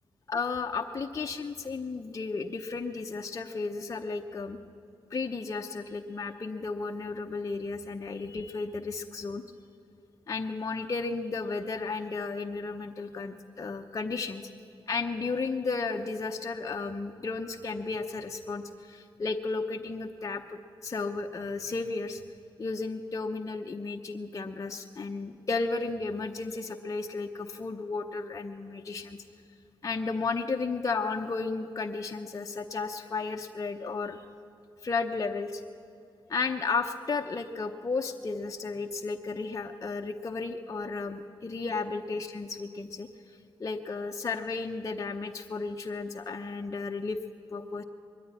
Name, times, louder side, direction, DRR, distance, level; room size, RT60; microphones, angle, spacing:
voice 1, 0.3-4.6 5.1-9.4 10.3-14.5 14.9-22.2 22.6-29.2 29.8-34.2 34.8-35.6 36.3-43.1 43.6-47.2 47.5-47.8, left 4 dB, 35° left, 3 dB, 0.8 m, -33 dB
21.5 x 14.0 x 9.9 m, 2.5 s
cardioid pair, 90°, 9 cm